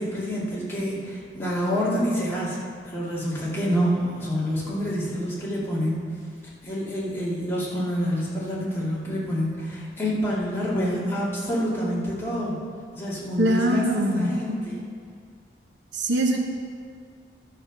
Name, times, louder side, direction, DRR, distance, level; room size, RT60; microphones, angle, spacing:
voice 1, 0.0-6.1 6.6-12.6 12.9-13.9 14.1-14.8, equal, 15° left, -8 dB, 2.5 m, -27 dB
voice 2, 13.4-14.3 15.9-16.4, right 1 dB, 85° right, 2 dB, 1.1 m, -22 dB
12.0 x 5.8 x 6.5 m, 2.1 s
head